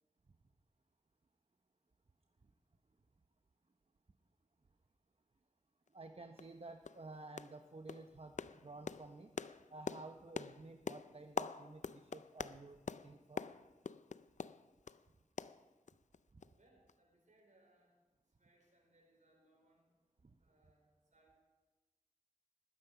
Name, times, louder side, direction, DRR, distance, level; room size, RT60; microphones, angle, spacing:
sound 1, 5.9-6.0 6.4-6.5 6.8-7.1 7.4-7.6 7.9-15.0 15.4-16.2 16.4-16.5 16.9-17.0, left 5 dB, 65° left, 0.4 m, -45 dB
voice 1, 5.9-9.3 9.7-13.4 16.3-16.4 20.2-20.3, right 2 dB, 45° right, 6 dB, 0.8 m, -53 dB
voice 2, 16.5-18.0 18.4-19.9 20.4-21.4, right 1 dB, 70° right, 1 dB, 4.5 m, -71 dB
20.0 x 9.4 x 5.8 m, 1.2 s
wide cardioid pair, 55°, 13 cm